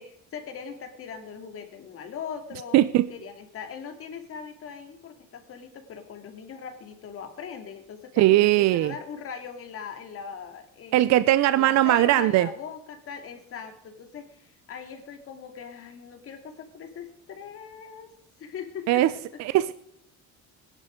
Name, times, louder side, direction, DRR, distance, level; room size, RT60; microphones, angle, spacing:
voice 1, 0.0-2.8 3.1-11.2 11.6-18.1 18.4-19.0, left 7 dB, 45° left, 6 dB, 2.5 m, -40 dB
voice 2, 2.7-3.1 8.2-8.9 10.9-12.5 18.9-19.1 19.4-19.7, right 15 dB, 55° right, 15 dB, 0.6 m, -19 dB
20.0 x 11.0 x 5.1 m, 0.73 s
cardioid pair, 160°, 33 cm